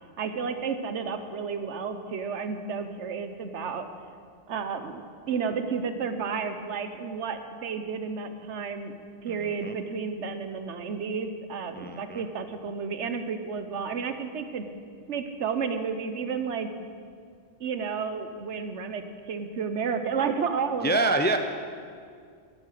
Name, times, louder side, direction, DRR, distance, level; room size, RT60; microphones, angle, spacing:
voice 1, 0.2-3.8 4.5-8.9 9.2-14.6 15.1-16.7 17.6-19.0 19.3-21.2, right 5 dB, 80° right, 8 dB, 1.2 m, -31 dB
voice 2, 9.3-9.7 11.8-12.2 20.8-21.4, right 2 dB, 15° left, 6 dB, 0.3 m, -26 dB
12.5 x 9.7 x 6.6 m, 2.2 s
omnidirectional pair, 1.2 m